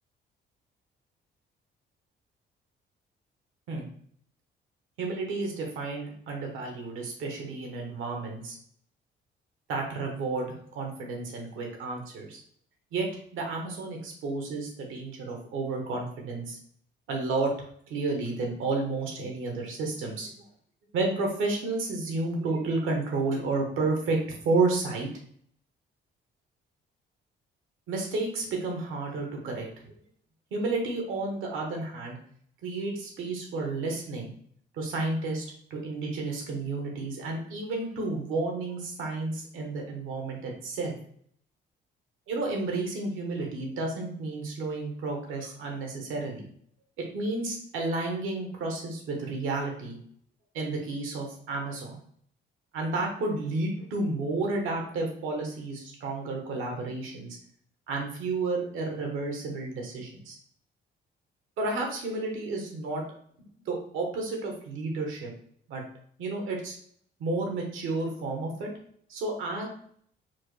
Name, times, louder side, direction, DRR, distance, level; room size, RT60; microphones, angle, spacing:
voice 1, 5.0-8.6 9.7-12.4 12.9-13.1 13.3-16.6 17.1-17.5 17.9-20.3 20.9-24.2 24.4-25.1 27.9-30.0 30.5-32.2 32.6-34.3 34.7-35.4 35.7-40.9 42.3-46.4 47.1-50.0 50.5-52.0 52.7-57.4 57.9-60.3 61.6-63.0 63.7-65.3 65.7-65.8 66.2-66.8 67.2-68.7 69.1-69.7, right 3 dB, 90° right, 1 dB, 1.3 m, -31 dB
4.6 x 2.2 x 4.7 m, 0.62 s
cardioid pair, 90°, 20 cm